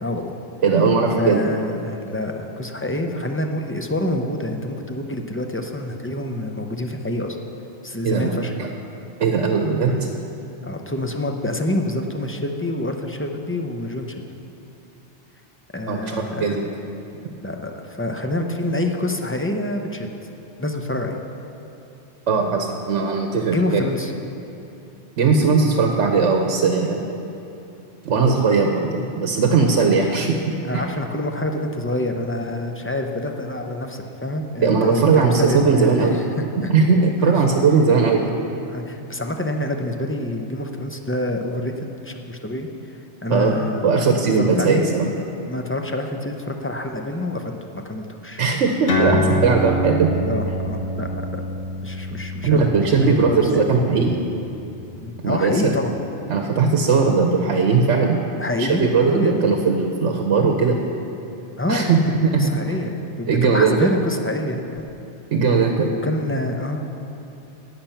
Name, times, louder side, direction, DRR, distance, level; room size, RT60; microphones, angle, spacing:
voice 1, 0.0-0.3 1.2-7.4 7.8-8.5 9.9-10.0 10.6-14.2 15.7-16.5 17.4-20.1 20.6-21.2 23.5-24.1 29.8-30.1 30.6-36.7 37.2-37.3 38.2-38.3 38.7-43.9 44.4-44.9 45.3-48.4 49.1-49.5 50.3-51.4 51.8-53.6 55.0-55.9 58.4-59.5 61.6-64.8 66.0-66.8, left 1 dB, 15° left, 4 dB, 0.5 m, -27 dB
voice 2, 0.6-1.5 8.0-8.7 9.2-10.0 15.9-16.6 22.3-23.8 25.2-27.0 28.0-30.4 34.6-36.2 36.6-38.2 43.3-45.1 48.4-50.1 52.4-54.2 55.2-55.7 56.3-58.2 58.6-60.8 61.7-62.0 62.3-62.8 63.3-63.9 65.3-65.9, right 4 dB, 80° right, 3 dB, 1.1 m, -19 dB
sound 1, 48.9-55.8, equal, 85° left, 1.8 m, -26 dB
18.0 x 6.0 x 5.8 m, 2.8 s
omnidirectional pair, 1.2 m